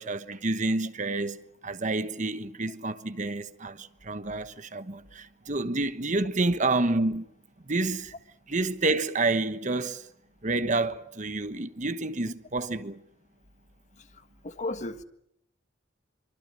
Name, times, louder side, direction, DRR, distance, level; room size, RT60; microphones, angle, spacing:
voice 1, 0.0-1.4 1.6-7.3 7.7-8.1 8.5-10.1 10.4-13.0, right 2 dB, 40° right, 1.2 m, -29 dB
voice 2, 14.2-15.0, left 2 dB, 40° left, 1.6 m, -35 dB
27.0 x 24.5 x 7.7 m
head